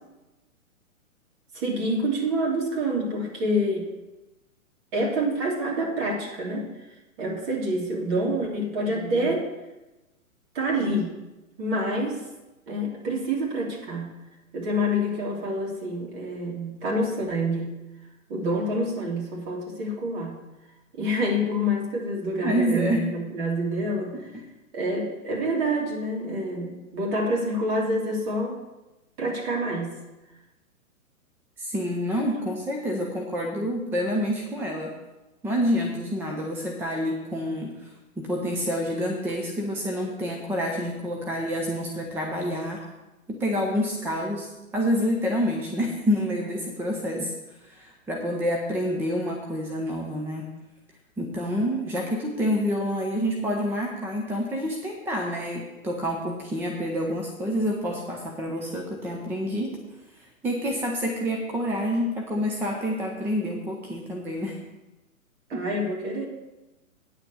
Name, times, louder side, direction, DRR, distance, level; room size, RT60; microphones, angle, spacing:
voice 1, 1.5-3.9 4.9-6.7 7.2-9.5 10.5-11.1 11.6-12.3 12.7-14.1 14.5-17.7 18.3-20.4 20.9-24.3 24.7-28.6 29.2-30.0 65.5-66.3, equal, 40° right, -2 dB, 3.4 m, -27 dB
voice 2, 22.4-23.1 24.1-24.2 31.6-35.0 35.4-42.8 43.3-50.5 51.2-59.8 60.1-64.6 65.5-65.7, equal, 5° right, 1 dB, 0.6 m, -28 dB
9.2 x 6.7 x 7.0 m, 1.0 s
figure-of-eight pair, 125°, 43 cm